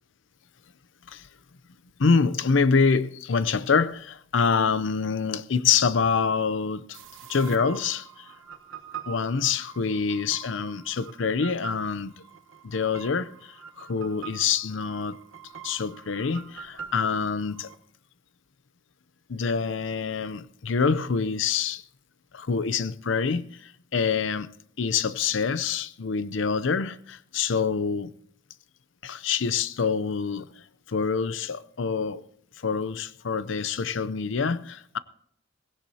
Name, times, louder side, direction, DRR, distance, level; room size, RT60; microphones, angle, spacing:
voice 1, 2.0-7.0 7.3-8.3 9.1-12.2 12.6-15.2 15.6-17.7 19.3-21.8 22.3-24.5 24.8-28.1 29.0-30.5 30.9-32.2 32.6-35.0, left 5 dB, 70° left, 0.6 m, -26 dB
sound 1, 6.9-17.7, right 7 dB, 80° right, 1.2 m, -44 dB
18.0 x 16.5 x 2.8 m
head